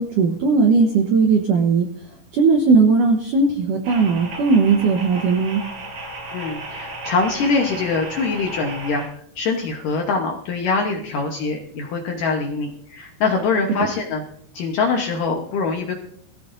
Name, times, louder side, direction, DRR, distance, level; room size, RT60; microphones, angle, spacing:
voice 1, 0.0-1.9 2.3-5.6, right 4 dB, 85° right, 3 dB, 1.8 m, -17 dB
sound 1, 3.8-9.1, right 2 dB, 45° right, 5.5 m, -34 dB
voice 2, 6.3-9.0 9.4-14.2 14.5-16.0, left 4 dB, 75° left, 1 dB, 2.0 m, -23 dB
21.5 x 15.0 x 2.6 m, 0.67 s
omnidirectional pair, 5.3 m